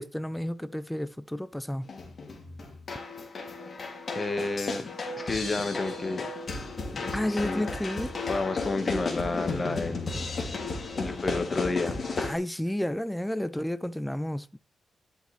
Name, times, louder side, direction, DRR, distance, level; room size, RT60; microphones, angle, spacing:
voice 1, 0.0-1.9 7.1-8.1 12.2-14.6, left 1 dB, 5° left, 0.6 m, -31 dB
sound 1, 1.8-12.4, left 3 dB, 45° left, 2.7 m, -34 dB
voice 2, 4.1-4.9 5.2-6.3 6.9-7.6 8.3-10.2 10.9-12.0, left 3 dB, 30° left, 1.5 m, -31 dB
11.0 x 6.5 x 3.3 m
cardioid pair, 110°, 0 cm